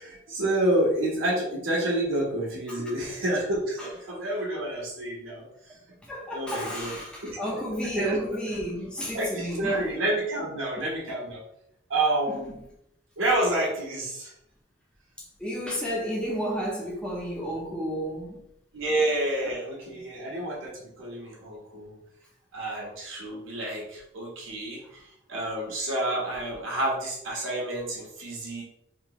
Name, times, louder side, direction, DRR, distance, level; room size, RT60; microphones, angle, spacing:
voice 1, 0.0-5.4 6.3-6.9 7.2-7.6 7.9-8.2 9.1-11.4 11.9-12.5 13.2-14.3 18.7-22.0 22.5-25.0 25.3-28.6, right 1 dB, 75° right, -3 dB, 1.3 m, -29 dB
voice 2, 6.0-9.9 12.3-12.4 15.4-18.4 19.5-19.6 19.9-20.0, equal, 5° left, -4 dB, 0.7 m, -32 dB
3.7 x 3.0 x 2.9 m, 0.80 s
head